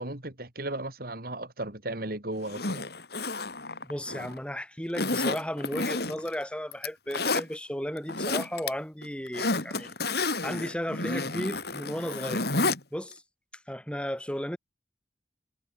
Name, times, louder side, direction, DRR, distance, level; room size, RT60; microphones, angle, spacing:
voice 1, 0.0-2.8, right 1 dB, 55° right, 3.7 m, -35 dB
Zipper (clothing), 2.4-4.4 4.9-6.3 6.7-7.4 8.0-8.7 9.0-12.8 13.1-13.2, left 3 dB, 60° left, 4.4 m, -30 dB
voice 2, 3.8-9.9 10.4-12.5 12.9-13.2 13.7-14.6, equal, 5° left, 3.3 m, -34 dB
head